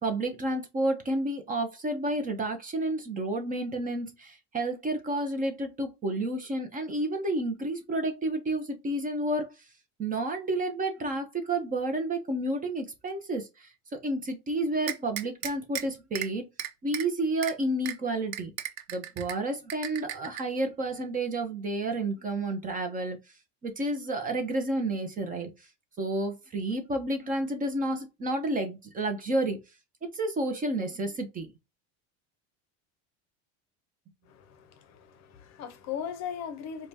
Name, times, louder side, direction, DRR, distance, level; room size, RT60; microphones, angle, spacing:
voice 1, 0.0-9.5 10.0-13.7 14.0-16.4 16.8-18.5 18.9-23.2 23.6-25.5 26.0-29.6 30.1-31.5, right 2 dB, 20° right, 0.5 m, -30 dB
sound 1, 14.9-15.8 16.1-16.3 16.6-17.0 17.4-17.5 17.9-18.0 18.3-19.3 19.7-20.4, right 11 dB, 80° right, 0.8 m, -34 dB
voice 2, 34.3-36.9, left 8 dB, 45° left, 0.6 m, -38 dB
4.7 x 2.3 x 2.6 m
cardioid pair, 150°, 39 cm